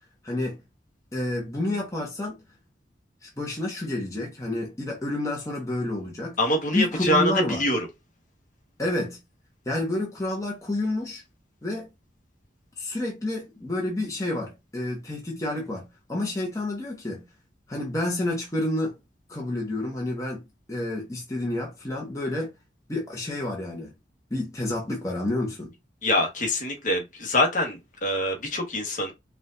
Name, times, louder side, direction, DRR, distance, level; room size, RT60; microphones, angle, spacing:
voice 1, 0.2-0.6 1.1-2.4 3.2-6.4 6.7-7.7 8.8-9.2 9.7-11.2 11.6-11.9 12.8-17.3 17.7-18.9 19.3-22.5 22.9-23.9 24.3-25.7, left 1 dB, 20° left, 1.1 m, -29 dB
voice 2, 6.4-7.9 26.0-29.1, left 1 dB, 45° left, 1.5 m, -25 dB
4.8 x 2.6 x 3.9 m
head